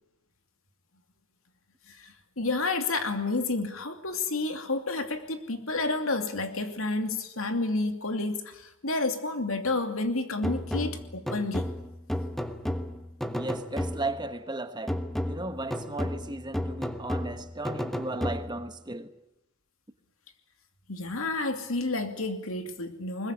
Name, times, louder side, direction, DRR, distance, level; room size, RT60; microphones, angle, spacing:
voice 1, 1.9-11.7 20.9-23.3, left 3 dB, 70° left, 2.7 m, -30 dB
sound 1, 10.4-14.3 14.9-18.8, equal, ahead, 1.2 m, -33 dB
voice 2, 13.3-15.0 15.2-19.1, right 2 dB, 20° right, 1.2 m, -35 dB
22.0 x 20.5 x 10.0 m
head